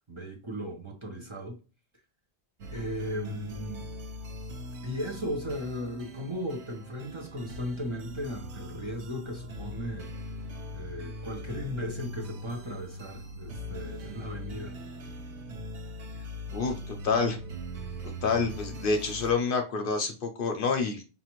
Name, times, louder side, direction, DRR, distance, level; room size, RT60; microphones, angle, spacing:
voice 1, 0.1-1.6 2.7-3.9 4.8-10.1 10.7-14.8, equal, 30° right, 0.8 m, -36 dB
sound 1, 2.6-19.3, equal, 90° right, 1.0 m, -41 dB
voice 2, 16.5-17.4 18.2-21.0, left 4 dB, 60° left, 0.7 m, -28 dB
5.5 x 2.4 x 2.9 m
omnidirectional pair, 1.1 m